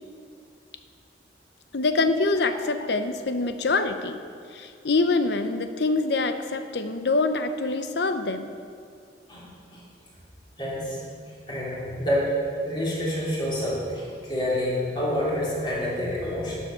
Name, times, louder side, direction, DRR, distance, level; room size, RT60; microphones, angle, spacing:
voice 1, 1.7-4.2 4.5-8.5, left 3 dB, 75° left, 9 dB, 0.7 m, -25 dB
voice 2, 9.3-9.8 10.6-11.0 11.5-12.3 12.6-16.6, left 1 dB, 25° left, -6 dB, 3.2 m, -28 dB
11.0 x 7.4 x 6.8 m, 2.3 s
head